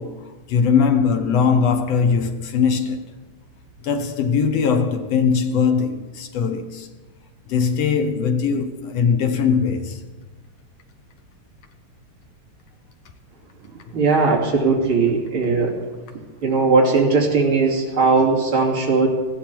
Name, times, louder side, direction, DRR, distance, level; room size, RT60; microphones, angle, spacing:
voice 1, 0.0-3.1 3.8-6.9 7.5-10.0, left 6 dB, 65° left, 1.8 m, -20 dB
voice 2, 13.9-15.7 16.4-19.1, right 4 dB, 40° right, 3.5 m, -18 dB
20.0 x 15.0 x 4.5 m
omnidirectional pair, 3.6 m